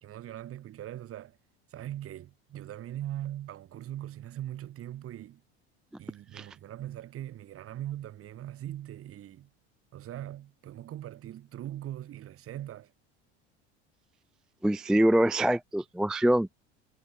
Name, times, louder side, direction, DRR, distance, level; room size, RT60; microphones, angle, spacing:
voice 1, 0.0-1.4 1.7-5.4 6.0-9.5 9.9-12.9, right 12 dB, 45° right, 1.6 m, -40 dB
voice 2, 14.6-16.5, right 1 dB, ahead, 0.3 m, -24 dB
supercardioid pair, 90°, 32 cm